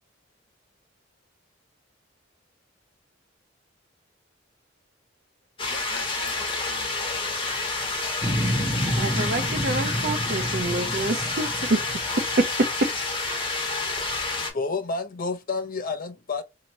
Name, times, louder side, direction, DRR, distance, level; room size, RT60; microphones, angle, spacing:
voice 1, 5.6-7.9, left 2 dB, 65° left, 1.1 m, -44 dB
sound 1, 5.6-14.5, left 3 dB, 30° left, 1.0 m, -29 dB
sound 2, 8.2-12.5, equal, 10° right, 0.8 m, -29 dB
voice 2, 9.0-11.8 12.4-12.9, right 2 dB, 50° right, 0.6 m, -26 dB
voice 3, 14.3-16.4, left 4 dB, 45° left, 0.6 m, -30 dB
2.9 x 2.8 x 2.8 m
head